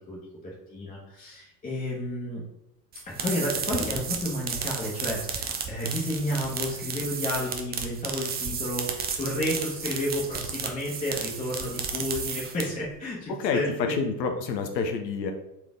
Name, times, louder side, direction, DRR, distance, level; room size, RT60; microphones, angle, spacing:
voice 1, 0.0-2.4 3.0-13.9, left 1 dB, 15° left, -5 dB, 1.1 m, -31 dB
sound 1, 2.9-12.9, right 6 dB, 20° right, 0.5 m, -33 dB
voice 2, 13.3-15.3, left 5 dB, 80° left, 5 dB, 0.7 m, -28 dB
4.3 x 3.2 x 3.6 m, 0.85 s
hypercardioid pair, 75°, 50 cm